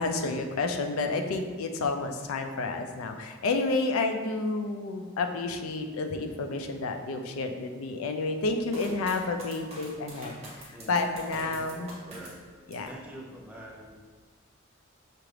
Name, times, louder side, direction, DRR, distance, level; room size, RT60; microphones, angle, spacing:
voice 1, 0.0-10.3 10.6-11.9 12.7-12.9, left 3 dB, 85° left, 5 dB, 0.4 m, -30 dB
sound 1, 8.7-13.0 13.4-14.1, right 1 dB, 30° right, 0.9 m, -46 dB
voice 2, 10.7-11.1 11.4-12.4 12.8-14.0, equal, 5° right, -3 dB, 0.5 m, -45 dB
5.7 x 2.5 x 3.2 m, 1.5 s
head